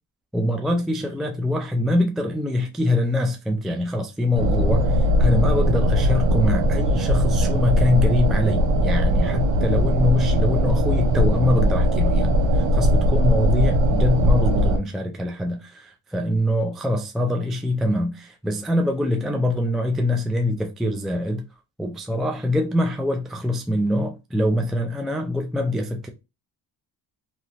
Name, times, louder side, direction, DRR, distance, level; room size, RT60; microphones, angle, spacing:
voice 1, 0.3-21.4 21.8-26.1, left 1 dB, ahead, 0.4 m, -24 dB
sound 1, 4.3-14.8, equal, 70° right, 1.1 m, -19 dB
2.9 x 2.7 x 2.9 m
supercardioid pair, 65°, 47 cm